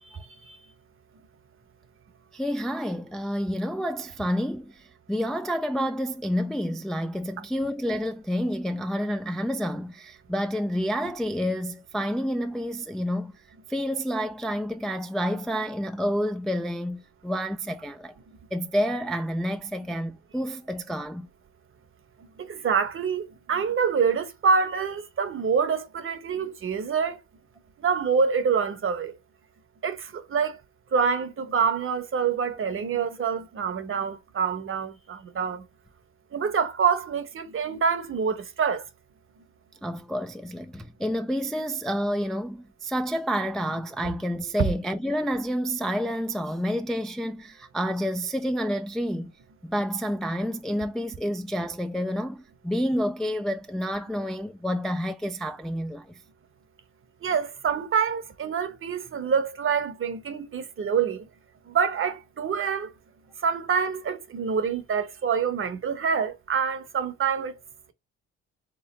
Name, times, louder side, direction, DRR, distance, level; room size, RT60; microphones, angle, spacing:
voice 1, 0.0-0.6 22.4-27.2 27.8-29.2 29.8-30.6 30.9-35.6 36.3-38.9 44.0-44.1 57.2-61.3 61.7-62.9 63.4-67.6, right 6 dB, 45° right, 0.9 m, -26 dB
voice 2, 2.3-4.8 5.1-13.3 13.7-18.1 18.5-21.3 39.8-49.3 49.6-56.1, equal, ahead, 0.3 m, -29 dB
3.6 x 3.1 x 4.2 m
cardioid pair, 90°, 30 cm